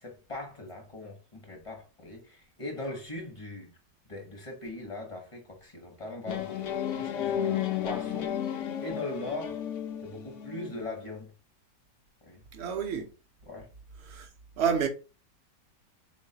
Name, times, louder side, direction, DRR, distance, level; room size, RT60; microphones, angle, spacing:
voice 1, 0.0-3.7 4.1-9.6 10.0-11.3 12.2-12.4 13.5-13.7, left 2 dB, 35° left, 0.5 m, -40 dB
sound 1, 6.3-10.9, left 10 dB, 80° left, 0.6 m, -33 dB
voice 2, 12.5-13.1 14.0-14.3 14.6-14.9, right 7 dB, 75° right, 0.6 m, -29 dB
3.8 x 3.1 x 2.7 m
omnidirectional pair, 1.9 m